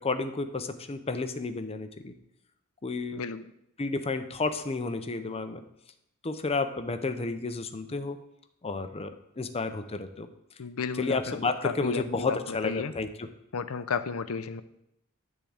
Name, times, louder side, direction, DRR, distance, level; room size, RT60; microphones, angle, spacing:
voice 1, 0.0-2.1 2.8-3.2 3.8-5.6 6.2-8.2 8.6-10.3 11.0-13.3, left 3 dB, 30° left, 9 dB, 0.6 m, -31 dB
voice 2, 3.1-3.5 10.6-12.9 13.5-14.6, left 5 dB, 70° left, 12 dB, 0.5 m, -33 dB
10.5 x 3.7 x 7.1 m, 0.82 s
head